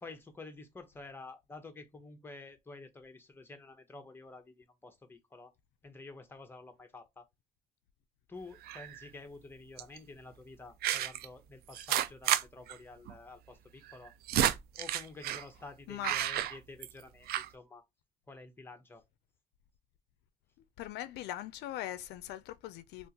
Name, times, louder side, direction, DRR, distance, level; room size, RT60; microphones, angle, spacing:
voice 1, 0.0-5.5 5.8-7.3 8.3-14.1 14.8-17.8 18.3-19.0, left 3 dB, 15° left, 0.8 m, -50 dB
Person Stabbed with Knife Large, 8.6-9.0 9.8-10.0 10.8-11.3 11.7-12.4 12.7-12.8 13.1-13.2 13.9-15.5 16.0-17.0 17.3-17.5, right 12 dB, 65° right, 0.4 m, -31 dB
voice 2, 20.8-23.1, left 13 dB, 80° left, 0.4 m, -41 dB
3.5 x 2.5 x 2.8 m
cardioid pair, 110°, 17 cm